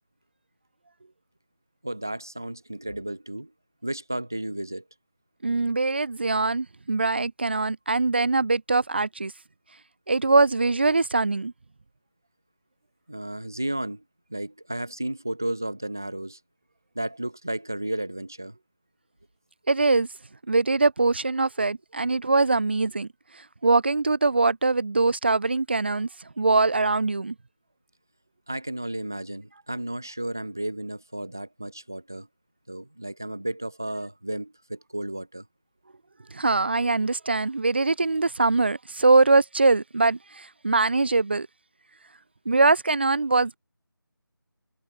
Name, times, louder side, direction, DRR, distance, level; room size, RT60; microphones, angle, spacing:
voice 1, 1.8-3.5 3.8-4.8 13.1-14.0 14.3-16.4 16.9-18.6 28.5-32.3 32.7-35.4, right 1 dB, 10° right, 0.6 m, -33 dB
voice 2, 5.4-9.3 10.1-11.5 19.7-20.1 20.5-23.1 23.6-26.1 26.4-27.3 36.3-41.5 42.5-43.6, right 3 dB, 30° right, 1.7 m, -22 dB
figure-of-eight pair, 180°, 12 cm